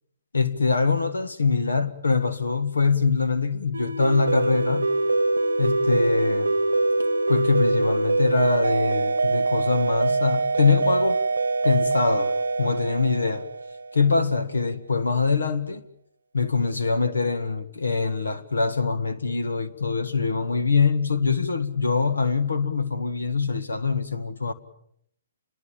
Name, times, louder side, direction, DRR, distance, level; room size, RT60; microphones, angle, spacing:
voice 1, 0.3-4.9 5.6-6.5 7.3-11.2 11.6-12.3 12.6-13.5 13.9-15.8 16.3-24.5, left 4 dB, 85° left, 1.8 m, -23 dB
sound 1, 3.7-14.1, right 3 dB, 90° right, 0.9 m, -24 dB
27.5 x 22.5 x 7.4 m
hypercardioid pair, 135°, 0 cm